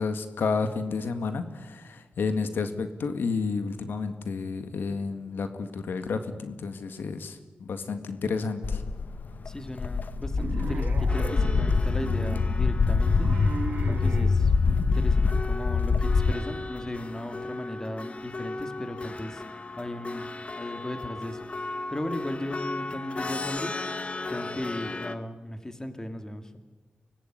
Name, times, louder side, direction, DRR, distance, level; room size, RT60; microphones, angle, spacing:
voice 1, 0.0-8.8, left 4 dB, 80° left, 9 dB, 1.9 m, -31 dB
Walk footsteps, 8.6-16.3, left 4 dB, 55° left, 1.2 m, -24 dB
voice 2, 9.5-13.3 13.8-19.4 19.8-24.0 24.3-26.5, left 1 dB, 15° left, 7 dB, 2.5 m, -37 dB
sound 1, 10.4-14.3, right 4 dB, 60° right, 1.9 m, -37 dB
sound 2, 11.1-25.2, left 2 dB, 35° left, 1.3 m, -37 dB
24.5 x 19.5 x 9.5 m, 1.2 s
wide cardioid pair, 90°, 3 cm